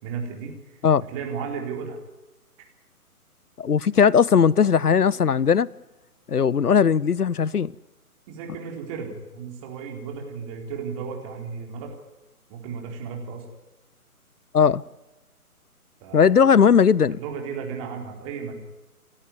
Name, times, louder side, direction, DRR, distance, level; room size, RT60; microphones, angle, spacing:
voice 1, 0.0-2.0 8.3-11.9 12.5-13.4 16.0-16.4 17.1-18.6, right 6 dB, 20° right, 4.2 m, -34 dB
voice 2, 3.6-5.7 6.3-7.7 14.5-14.8 16.1-17.2, left 7 dB, 80° left, 0.7 m, -18 dB
29.5 x 13.5 x 9.5 m
figure-of-eight pair, 140°, 45 cm